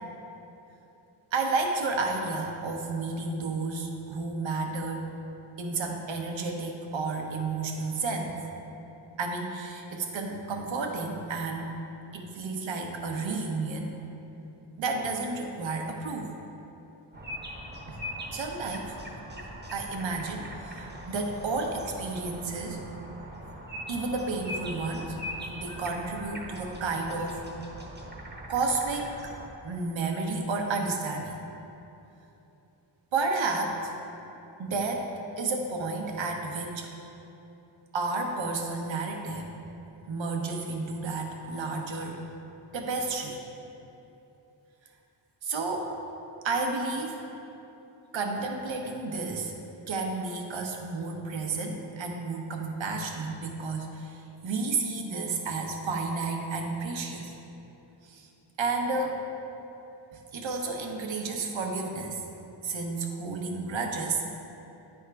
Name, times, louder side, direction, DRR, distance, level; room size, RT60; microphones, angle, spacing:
voice 1, 1.3-5.1 5.6-8.4 9.2-11.7 12.1-14.0 14.8-16.3 17.9-18.0 18.3-19.0 19.7-22.8 23.9-25.2 25.6-27.4 28.5-29.1 29.6-31.4 33.1-33.9 34.6-35.1 35.4-36.9 37.9-39.5 40.1-42.2 42.7-43.4 45.4-45.9 46.4-47.2 48.1-49.5 49.9-57.3 58.0-58.3 58.6-59.2 60.1-62.2 62.6-64.2, right 3 dB, 75° right, 2 dB, 1.0 m, -31 dB
sound 1, 17.1-29.5, equal, 20° right, 1.0 m, -41 dB
9.6 x 3.6 x 4.6 m, 2.9 s
cardioid pair, 85°, 46 cm